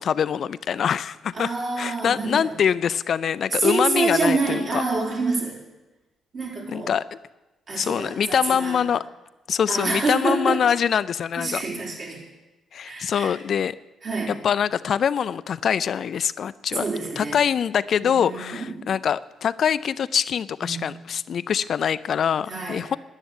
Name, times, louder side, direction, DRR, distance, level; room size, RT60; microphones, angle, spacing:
voice 1, 0.0-1.5 1.8-4.8 6.7-7.2 7.7-9.0 9.5-11.6 12.7-13.7 14.3-16.9 17.2-23.0, left 8 dB, 60° left, 15 dB, 0.4 m, -24 dB
voice 2, 1.3-2.6 3.6-5.6 6.3-6.9 7.7-8.8 9.7-10.6 11.4-12.2 12.8-13.3 14.0-14.4 16.7-17.4 18.0-18.8 20.6-20.8 22.5-22.8, right 3 dB, 50° right, -2 dB, 4.6 m, -27 dB
10.5 x 10.0 x 9.7 m, 1.1 s
cardioid pair, 90°, 0 cm